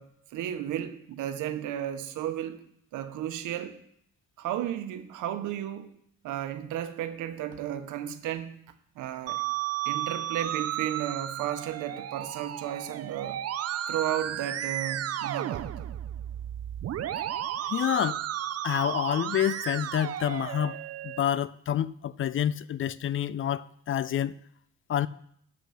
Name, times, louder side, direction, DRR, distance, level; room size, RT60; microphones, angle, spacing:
voice 1, 0.0-2.6 2.9-3.8 4.4-5.9 6.2-8.6 9.0-9.4 9.8-13.4 13.9-15.9, right 11 dB, 90° right, 0.9 m, -33 dB
Musical instrument, 9.3-21.2, right 11 dB, 55° right, 0.6 m, -33 dB
voice 2, 17.7-18.2 18.6-20.8 21.0-24.4 24.9-25.1, left 10 dB, 45° left, 0.4 m, -28 dB
8.1 x 5.9 x 5.7 m
cardioid pair, 90°, 30 cm